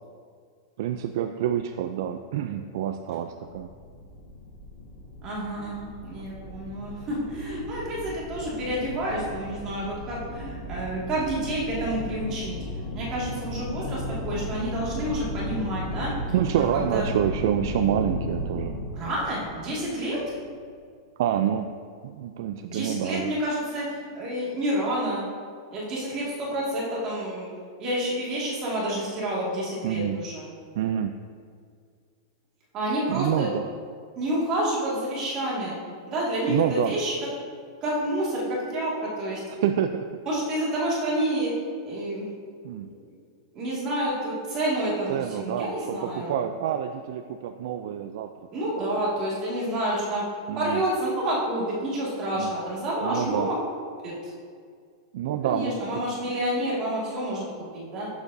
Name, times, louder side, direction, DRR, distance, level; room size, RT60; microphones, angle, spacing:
voice 1, 0.8-3.7 16.3-18.8 21.2-21.7 22.0-23.3 29.8-30.2 30.8-31.1 33.1-33.6 36.5-36.9 39.5-40.1 42.6-42.9 45.1-48.3 48.8-48.9 50.5-50.8 52.4-52.5 53.0-53.5 55.1-55.8, right 10 dB, 55° right, 7 dB, 0.3 m, -27 dB
sound 1, 3.5-20.5, left 1 dB, 35° left, 1.2 m, -35 dB
voice 2, 5.2-12.6 12.9-16.1 16.6-17.0 18.9-20.2 22.6-25.3 25.7-27.5 27.8-30.5 32.7-33.5 34.2-35.8 36.1-37.1 37.8-39.4 40.3-41.5 41.8-42.3 42.7-42.9 43.5-46.3 48.5-50.2 50.5-53.6 54.0-54.3 55.4-58.1, right 1 dB, 25° right, -6 dB, 2.0 m, -29 dB
11.0 x 7.2 x 2.6 m, 2.1 s
supercardioid pair, 170°, 2 cm